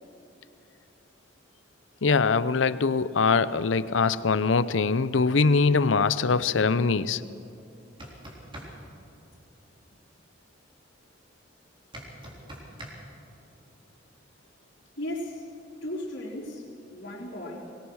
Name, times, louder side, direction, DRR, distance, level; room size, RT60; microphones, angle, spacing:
voice 1, 2.0-7.2, left 4 dB, 80° left, 15 dB, 0.7 m, -23 dB
sound 1, 7.8-8.7 11.9-12.9, right 1 dB, 25° right, 3.8 m, -41 dB
voice 2, 15.0-15.5 15.8-17.6, left 1 dB, 60° left, -5 dB, 3.7 m, -36 dB
23.0 x 20.0 x 6.4 m, 2.9 s
head